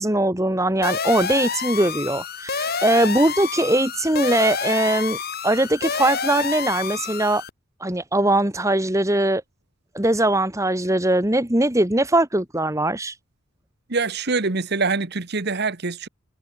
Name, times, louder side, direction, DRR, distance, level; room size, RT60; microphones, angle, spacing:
voice 1, 0.0-7.4 7.8-9.4 9.9-13.2, right 1 dB, 15° right, 1.7 m, -21 dB
sound 1, 0.8-7.5, left 5 dB, 45° left, 4.1 m, -28 dB
voice 2, 13.9-16.1, right 4 dB, 50° right, 1.3 m, -24 dB
head